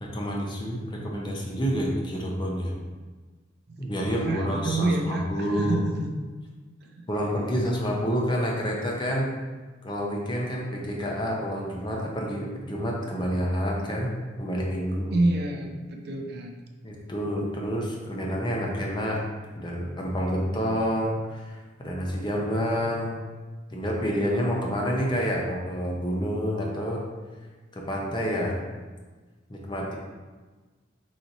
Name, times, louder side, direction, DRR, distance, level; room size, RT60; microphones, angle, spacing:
voice 1, 0.0-2.7 3.8-5.8 7.1-9.3 9.8-15.2 16.8-19.2 19.6-23.1 23.7-27.0 27.7-28.5 29.5-30.0, equal, 25° left, -2 dB, 0.7 m, -28 dB
voice 2, 3.7-6.1 6.8-7.0 15.1-16.5, right 2 dB, 55° right, 2 dB, 0.5 m, -28 dB
4.0 x 3.1 x 4.0 m, 1.3 s
head